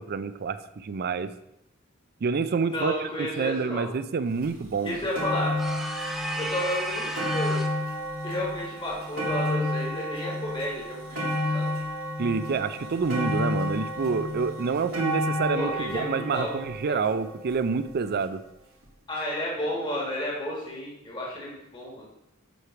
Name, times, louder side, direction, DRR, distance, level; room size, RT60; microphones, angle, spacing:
voice 1, 0.0-1.3 2.2-2.9 3.2-5.0 12.2-18.4, right 5 dB, 50° right, 12 dB, 0.4 m, -28 dB
voice 2, 2.6-3.8 4.8-5.6 6.4-7.6 8.2-11.7 15.5-16.5 16.8-17.0 19.1-22.1, left 1 dB, 25° left, -4 dB, 1.5 m, -32 dB
sound 1, 4.4-4.5 4.9-18.0 18.8-18.9, left 1 dB, 70° right, 2.1 m, -31 dB
sound 2, 5.6-7.8, right 1 dB, ahead, 0.7 m, -34 dB
7.9 x 3.3 x 5.7 m, 0.83 s
head